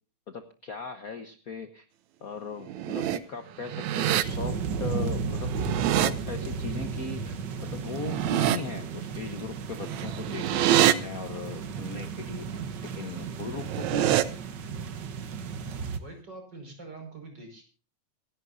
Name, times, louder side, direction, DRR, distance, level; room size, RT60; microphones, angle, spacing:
voice 1, 0.3-1.8 2.2-5.5 5.9-12.5 12.9-14.3, left 5 dB, 65° left, 8 dB, 0.8 m, -38 dB
sound 1, 2.6-3.2 3.6-4.2 5.4-6.1 7.9-8.6 9.8-10.9 13.5-14.2, right 12 dB, 75° right, 2.2 m, -25 dB
sound 2, 4.2-16.0, right 5 dB, 55° right, 1.3 m, -34 dB
voice 2, 16.0-17.6, right 3 dB, 35° right, 4 dB, 5.9 m, -44 dB
26.5 x 11.5 x 2.6 m, 0.35 s
omnidirectional pair, 3.4 m